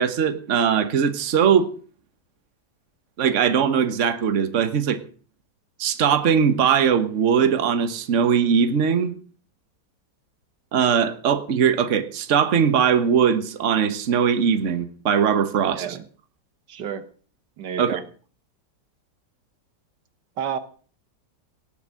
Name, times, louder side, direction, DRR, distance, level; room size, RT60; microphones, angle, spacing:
voice 1, 0.0-1.7 3.2-5.0 5.8-9.1 10.7-15.8 17.8-18.0, right 7 dB, 45° right, 11 dB, 1.4 m, -20 dB
voice 2, 15.7-16.0 16.7-17.0 17.6-18.0 20.4-20.6, right 8 dB, 80° right, 12 dB, 1.7 m, -30 dB
18.0 x 7.3 x 7.6 m, 0.43 s
omnidirectional pair, 1.9 m